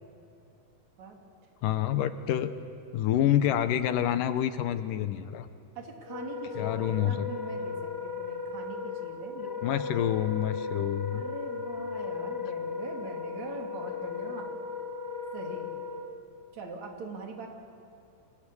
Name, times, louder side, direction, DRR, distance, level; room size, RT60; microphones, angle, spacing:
voice 1, 1.6-2.5 2.9-5.5 6.6-7.3 9.6-11.2, left 11 dB, 75° left, 11 dB, 2.4 m, -27 dB
voice 2, 5.8-10.1 11.1-14.5 15.3-15.7 16.5-17.5, right 4 dB, 55° right, 1 dB, 3.9 m, -43 dB
Wind instrument woodwind instrument, 6.0-16.1, left 5 dB, 20° left, 1.9 m, -36 dB
29.5 x 24.5 x 7.1 m, 2.7 s
omnidirectional pair, 4.0 m